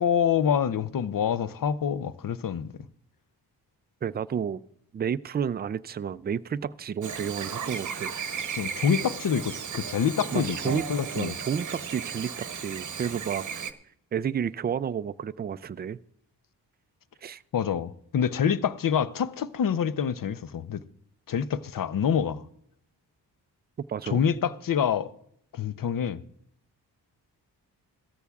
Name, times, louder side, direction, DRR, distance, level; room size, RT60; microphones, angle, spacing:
voice 1, 0.0-2.7 8.6-11.3 17.5-20.8 21.3-22.4 24.1-25.1 25.5-26.2, left 8 dB, 55° left, 0.7 m, -26 dB
voice 2, 4.0-4.6 4.9-8.1 10.3-10.9 11.1-13.7 14.1-16.0 17.2-17.4 23.8-24.2, right 7 dB, 25° right, 0.3 m, -31 dB
Chirp tweet / Buzz, 7.0-13.7, right 6 dB, 45° right, 0.9 m, -35 dB
17.5 x 13.5 x 2.4 m
cardioid pair, 60°, 41 cm